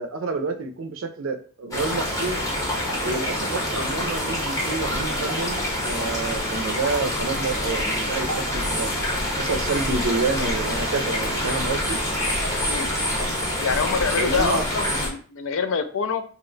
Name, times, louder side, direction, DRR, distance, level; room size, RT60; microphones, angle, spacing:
voice 1, 0.0-2.4 3.0-8.9 9.4-12.0 14.2-14.6, right 3 dB, 65° right, 6 dB, 0.4 m, -28 dB
sound 1, 1.7-15.1, left 1 dB, 15° left, 0.7 m, -26 dB
voice 2, 13.6-16.2, left 5 dB, 65° left, 9 dB, 0.4 m, -26 dB
2.7 x 2.1 x 3.8 m, 0.43 s
head